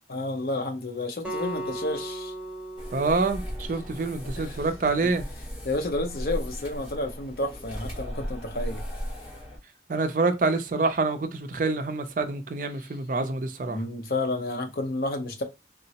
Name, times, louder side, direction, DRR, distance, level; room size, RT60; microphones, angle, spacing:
voice 1, 0.1-2.3 4.4-4.9 5.6-8.8 13.6-15.4, left 2 dB, 55° left, 0.6 m, -31 dB
Acoustic guitar, 1.2-4.5, right 1 dB, 5° right, 0.9 m, -37 dB
sound 1, 2.8-9.6, equal, 30° left, 1.1 m, -37 dB
voice 2, 2.9-5.2 9.9-13.8, right 3 dB, 50° right, 0.4 m, -26 dB
3.7 x 2.0 x 2.7 m
head